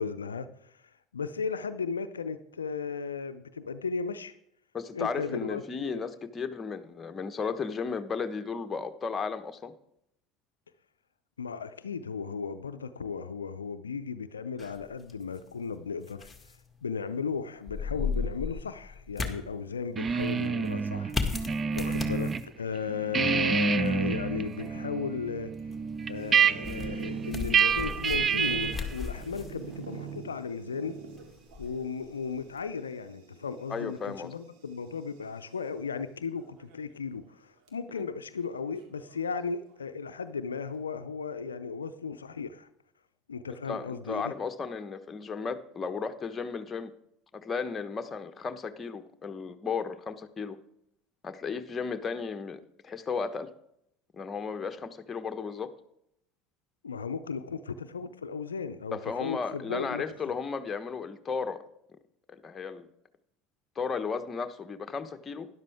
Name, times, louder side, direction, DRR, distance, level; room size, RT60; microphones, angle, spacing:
voice 1, 0.0-4.3 4.9-6.0 11.4-25.5 26.1-31.0 31.6-42.7 43.3-44.3 56.8-60.0, left 5 dB, 85° left, 10 dB, 0.5 m, -35 dB
voice 2, 4.7-9.7 33.7-34.3 38.0-38.1 43.6-46.9 47.3-50.6 51.2-53.5 54.1-55.7 58.9-61.6 62.3-62.9 63.7-65.5, left 5 dB, 25° left, 8 dB, 1.1 m, -34 dB
sound 1, 14.6-32.7, left 4 dB, 10° left, 2.0 m, -39 dB
sound 2, 20.0-22.4 22.8-28.9, right 6 dB, 30° right, 0.5 m, -28 dB
sound 3, 26.1-35.6 36.4-36.9 37.3-37.4 37.7-37.8 38.7-39.8, right 7 dB, 65° right, 2.3 m, -46 dB
12.0 x 11.0 x 3.5 m, 0.75 s
hypercardioid pair, 70°, 0 cm